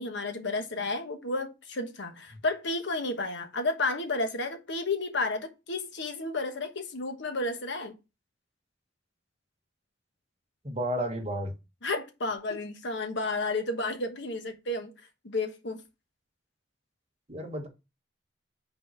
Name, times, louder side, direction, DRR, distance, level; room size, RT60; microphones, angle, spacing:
voice 1, 0.0-8.0 11.8-14.9 15.2-15.8, left 2 dB, 65° left, 1.2 m, -32 dB
voice 2, 10.6-11.5 17.3-17.7, equal, 35° right, 1.3 m, -32 dB
5.5 x 4.2 x 5.8 m
head